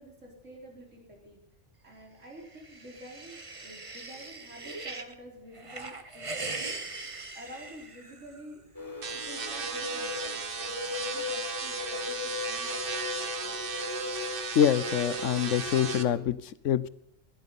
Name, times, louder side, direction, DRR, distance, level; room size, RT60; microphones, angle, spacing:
voice 1, 0.0-1.4 1.8-6.3 6.6-6.8 7.3-8.6 9.1-13.6, equal, 80° right, -1 dB, 4.7 m, -49 dB
sound 1, 2.4-5.1 5.5-8.4, right 3 dB, 30° right, 1.2 m, -40 dB
sound 2, 8.7-16.2, left 3 dB, 15° left, 2.1 m, -37 dB
sound 3, 9.0-16.0, right 5 dB, 50° right, 1.3 m, -36 dB
voice 2, 14.5-16.9, left 9 dB, 85° left, 17 dB, 1.1 m, -25 dB
16.0 x 12.0 x 5.5 m, 0.78 s
omnidirectional pair, 1.2 m